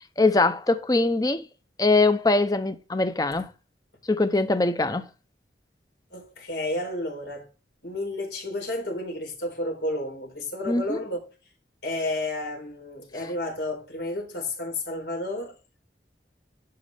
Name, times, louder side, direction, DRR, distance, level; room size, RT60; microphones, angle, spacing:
voice 1, 0.2-1.4 1.8-3.5 4.1-5.0 10.7-11.0, left 2 dB, 20° left, 0.6 m, -22 dB
voice 2, 6.1-7.5 7.8-11.2 11.8-15.6, left 1 dB, 85° left, 4.1 m, -31 dB
11.5 x 5.3 x 3.4 m
head